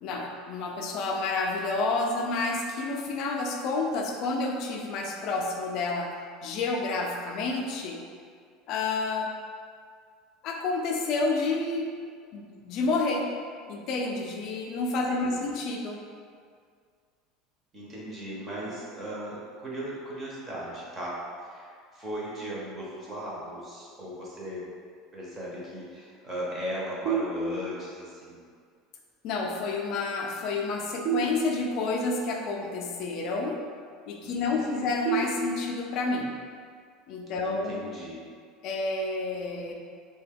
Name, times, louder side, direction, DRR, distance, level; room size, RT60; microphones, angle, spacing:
voice 1, 0.0-6.1 6.4-8.0 8.7-9.3 10.4-11.9 12.3-13.3 13.7-16.0 29.2-33.6 34.1-36.3 37.1-37.8 38.6-39.7, left 3 dB, 45° left, 1 dB, 0.4 m, -29 dB
voice 2, 15.0-15.4 17.7-21.2 21.4-24.7 25.1-28.4 34.2-34.9 37.4-38.3, equal, 15° right, -6 dB, 0.6 m, -37 dB
sound 1, 27.0-28.0 31.0-32.0 35.0-36.0, right 4 dB, 80° right, 0.9 m, -31 dB
2.8 x 2.2 x 3.4 m, 2.1 s
cardioid pair, 170°, 0 cm